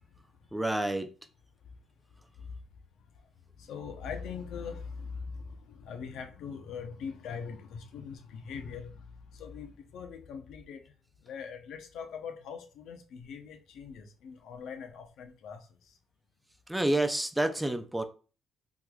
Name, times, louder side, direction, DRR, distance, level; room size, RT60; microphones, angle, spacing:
voice 1, 0.5-1.1 16.7-18.0, right 1 dB, 10° right, 0.4 m, -28 dB
voice 2, 3.6-8.9 9.3-10.8 11.2-15.6, left 6 dB, 80° left, 0.6 m, -41 dB
3.6 x 3.0 x 2.2 m
cardioid pair, 90°, 0 cm